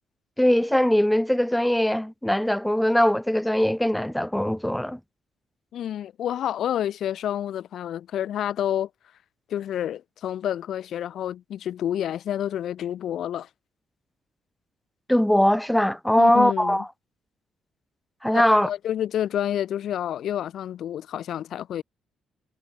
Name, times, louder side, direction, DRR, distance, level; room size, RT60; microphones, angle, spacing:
voice 1, 0.4-5.0 15.1-16.9 18.2-18.7, left 1 dB, 5° left, 0.6 m, -21 dB
voice 2, 5.7-8.9 9.5-13.5 16.2-16.8 18.3-21.8, left 10 dB, 70° left, 0.3 m, -29 dB
cardioid pair, 90°, 0 cm